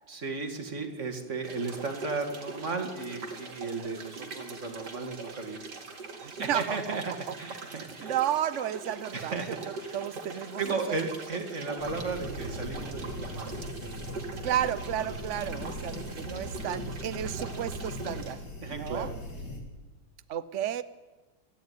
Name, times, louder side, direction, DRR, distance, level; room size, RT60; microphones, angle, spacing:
voice 1, 0.1-5.6 6.4-7.0 7.4-8.1 9.1-10.0 10.3-13.6 18.6-19.1, right 3 dB, 35° right, 4 dB, 2.7 m, -35 dB
sound 1, 1.4-18.3, right 3 dB, 50° right, 2.9 m, -42 dB
voice 2, 6.2-7.0 7.7-9.4 9.9-11.0 14.4-18.4 18.7-19.1 20.3-20.8, right 11 dB, 85° right, 14 dB, 0.6 m, -32 dB
sound 2, 11.8-19.6, equal, 50° left, 4.1 m, -39 dB
29.5 x 11.5 x 9.6 m, 1.2 s
omnidirectional pair, 2.4 m